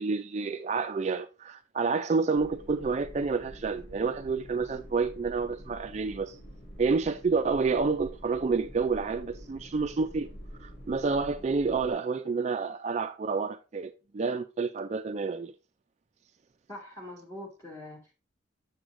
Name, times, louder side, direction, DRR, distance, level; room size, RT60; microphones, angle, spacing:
voice 1, 0.0-6.4 6.8-10.3 10.6-15.5, right 4 dB, 35° right, 0.3 m, -29 dB
sound 1, 2.4-11.9, equal, 70° left, 3.8 m, -47 dB
voice 2, 16.7-18.1, left 1 dB, 15° left, 2.2 m, -43 dB
7.6 x 7.1 x 2.5 m
head